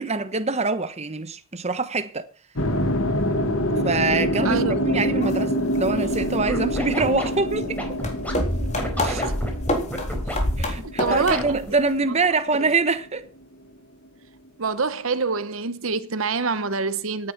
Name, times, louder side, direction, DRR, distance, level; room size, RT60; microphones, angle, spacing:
voice 1, 0.0-2.3 3.8-4.6 4.9-7.8 8.6-8.7 9.0-9.2 10.6-13.2, right 3 dB, 30° right, 1.1 m, -24 dB
sound 1, 2.6-12.7, equal, 70° left, 2.3 m, -26 dB
voice 2, 4.4-4.7 9.1-9.3 10.8-11.6 14.6-17.3, right 4 dB, 65° right, 1.0 m, -26 dB
sound 2, 5.2-5.3 5.8-11.7, left 1 dB, 35° left, 3.8 m, -28 dB
Scratching (performance technique), 6.4-8.3 8.8-10.4 11.0-11.7, equal, 5° left, 4.5 m, -31 dB
17.5 x 9.8 x 6.0 m
head